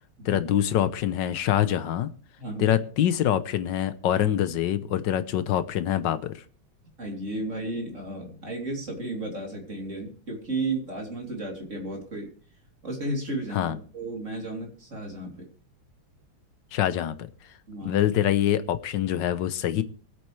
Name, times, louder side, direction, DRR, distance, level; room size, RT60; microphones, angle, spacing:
voice 1, 0.2-2.1 2.6-6.3 13.5-13.8 16.7-17.2 17.8-19.8, left 11 dB, 70° left, 1.5 m, -25 dB
voice 2, 2.4-2.8 7.0-12.3 12.8-15.5 17.7-18.0, right 2 dB, 35° right, 3.4 m, -33 dB
23.5 x 8.5 x 3.3 m
omnidirectional pair, 2.1 m